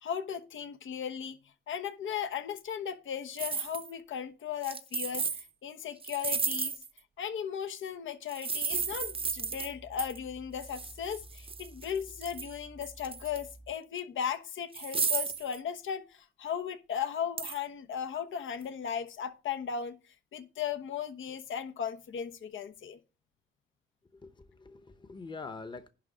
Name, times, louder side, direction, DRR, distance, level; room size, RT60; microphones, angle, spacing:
voice 1, 0.0-1.4 1.7-6.7 7.2-20.0 20.3-23.0, left 8 dB, 80° left, 1.1 m, -36 dB
sound 1, 3.4-3.9 4.6-5.4 6.0-7.0 8.3-9.7 10.0-10.2 10.6-12.5 12.8-13.5 14.0-14.1 14.7-15.6 17.4-17.6, right 5 dB, 25° right, 0.6 m, -34 dB
sound 2, 8.7-13.7, right 1 dB, 45° left, 2.3 m, -53 dB
voice 2, 24.1-25.9, left 4 dB, 25° left, 0.9 m, -44 dB
11.0 x 3.7 x 7.2 m
cardioid pair, 95°, 20 cm